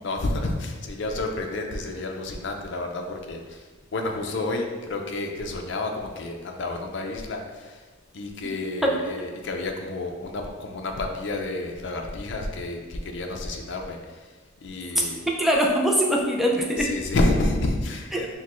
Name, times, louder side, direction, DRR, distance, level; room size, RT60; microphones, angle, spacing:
voice 1, 0.0-7.8 8.1-14.3 14.6-15.3 16.8-18.3, left 2 dB, 60° left, 3 dB, 0.5 m, -30 dB
voice 2, 15.4-16.9 18.1-18.3, equal, ahead, -1 dB, 0.4 m, -22 dB
6.2 x 2.2 x 3.0 m, 1.4 s
head